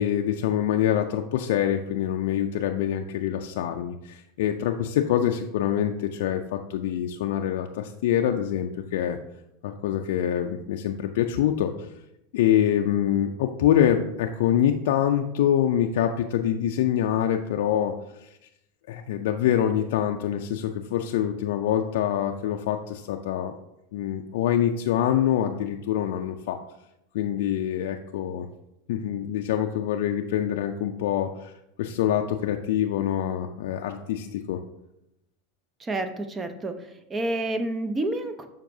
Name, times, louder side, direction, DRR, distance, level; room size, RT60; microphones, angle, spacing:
voice 1, 0.0-9.2 9.6-11.7 12.3-17.9 18.2-18.3 18.9-23.5 23.9-26.6 27.1-28.5 28.9-31.5 31.8-34.6, left 10 dB, 75° left, 4 dB, 0.4 m, -25 dB
voice 2, 35.8-38.5, right 2 dB, 20° right, 9 dB, 0.6 m, -29 dB
7.3 x 5.2 x 2.7 m, 0.85 s
hypercardioid pair, 105°, 0 cm